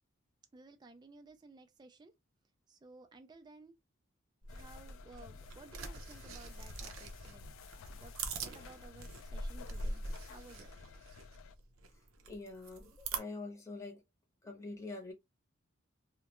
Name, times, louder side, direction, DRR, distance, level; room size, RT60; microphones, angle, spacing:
voice 1, 0.5-2.2 2.7-3.8 4.5-7.4 7.8-8.1 8.4-10.0 10.3-10.7, right 3 dB, 20° right, 0.3 m, -56 dB
sound 1, 4.4-13.2, right 3 dB, 80° right, 0.6 m, -43 dB
sound 2, 4.5-11.5, left 4 dB, 75° left, 0.3 m, -53 dB
voice 2, 12.3-14.0 14.4-15.1, left 3 dB, 15° left, 0.8 m, -45 dB
2.3 x 2.1 x 2.9 m
head